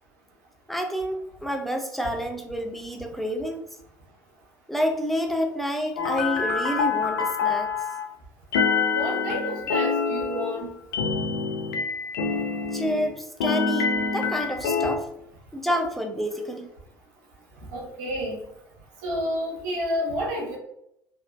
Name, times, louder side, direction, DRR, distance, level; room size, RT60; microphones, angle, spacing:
voice 1, 0.7-3.7 4.7-7.7 12.3-12.4 12.7-15.1 15.5-16.7, equal, ahead, 3 dB, 0.6 m, -29 dB
sound 1, 6.0-8.0 8.5-13.1 13.4-15.0, left 5 dB, 75° left, 0.5 m, -26 dB
voice 2, 8.9-10.7 17.7-18.4 19.0-20.6, equal, 70° right, -2 dB, 1.1 m, -30 dB
3.5 x 2.6 x 2.4 m, 0.77 s
hypercardioid pair, 65°, 10 cm